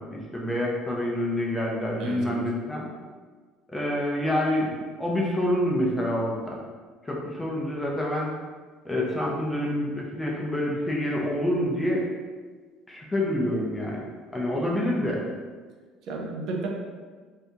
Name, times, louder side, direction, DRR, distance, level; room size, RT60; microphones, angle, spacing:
voice 1, 0.1-2.9 3.7-6.6 7.0-8.3 8.8-12.0 12.9-14.0 14.3-15.2, left 1 dB, 10° left, -3 dB, 0.4 m, -27 dB
voice 2, 2.0-2.4 16.1-16.7, right 3 dB, 50° right, 0 dB, 0.5 m, -32 dB
2.7 x 2.6 x 3.4 m, 1.5 s
cardioid pair, 170°, 0 cm